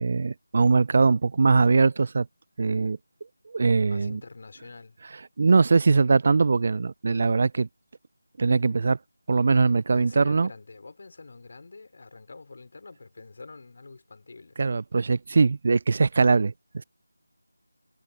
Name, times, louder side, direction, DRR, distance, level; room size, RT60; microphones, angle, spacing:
voice 1, 0.0-2.3 2.6-3.0 3.5-4.2 5.4-7.7 8.4-9.0 9.3-10.5 14.6-16.8, right 4 dB, 40° right, 0.4 m, -21 dB
voice 2, 3.9-5.0 9.9-14.6, left 3 dB, 45° left, 4.6 m, -45 dB
figure-of-eight pair, 165°, 0 cm